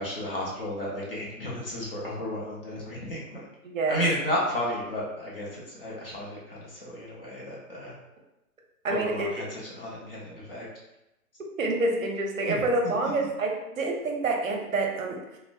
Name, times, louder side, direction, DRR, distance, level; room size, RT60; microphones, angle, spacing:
voice 1, 0.0-3.4 3.9-7.9 8.9-10.7 12.5-12.6 13.0-13.1, equal, 40° left, -5 dB, 0.6 m, -33 dB
voice 2, 3.6-4.0 8.8-9.3 11.6-15.2, right 2 dB, 60° right, 1 dB, 0.6 m, -27 dB
2.6 x 2.1 x 2.5 m, 0.93 s
hypercardioid pair, 155°, 45 cm